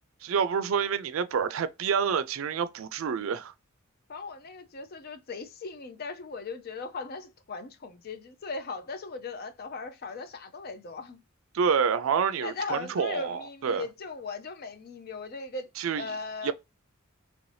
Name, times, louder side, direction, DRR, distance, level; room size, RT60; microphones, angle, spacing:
voice 1, 0.2-3.5 11.5-13.8 15.8-16.1 16.4-16.5, right 6 dB, 75° right, 0.4 m, -28 dB
voice 2, 4.1-11.2 12.4-15.7 16.0-16.5, left 4 dB, 50° left, 0.5 m, -38 dB
3.0 x 2.6 x 3.2 m
head